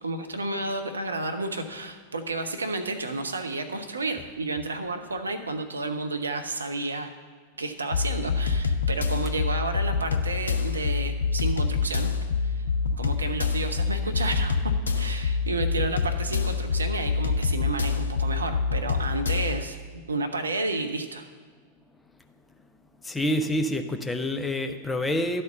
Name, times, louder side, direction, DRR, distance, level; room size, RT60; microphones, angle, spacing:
voice 1, 0.0-7.1 7.6-12.1 12.4-12.6 13.0-14.6 15.0-19.8 20.1-21.2, right 2 dB, 75° right, 7 dB, 0.6 m, -31 dB
sound 1, 7.9-19.6, left 5 dB, 75° left, 0.5 m, -26 dB
voice 2, 23.0-25.4, left 1 dB, 10° left, 5 dB, 0.6 m, -27 dB
11.5 x 4.3 x 6.6 m, 1.5 s
figure-of-eight pair, 90°, 0 cm